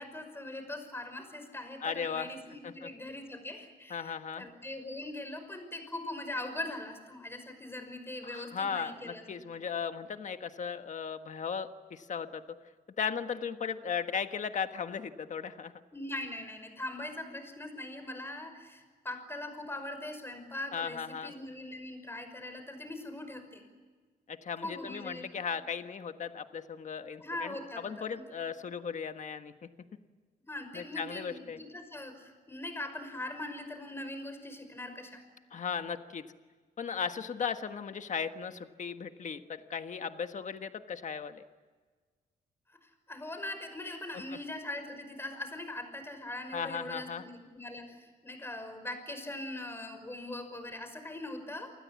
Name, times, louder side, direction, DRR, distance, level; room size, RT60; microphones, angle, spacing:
voice 1, 0.0-9.2 15.9-23.6 24.6-25.3 27.2-27.8 28.1-28.2 30.5-35.2 42.8-51.7, left 1 dB, 15° left, 7 dB, 5.7 m, -41 dB
voice 2, 1.8-2.3 2.6-2.9 3.9-4.5 8.2-12.4 13.0-15.7 20.7-21.3 24.3-29.7 30.7-31.6 35.5-36.2 36.8-41.4 44.1-44.2 46.5-47.2, left 6 dB, 50° left, 8 dB, 1.5 m, -37 dB
28.5 x 20.0 x 8.4 m, 1.4 s
cardioid pair, 125°, 17 cm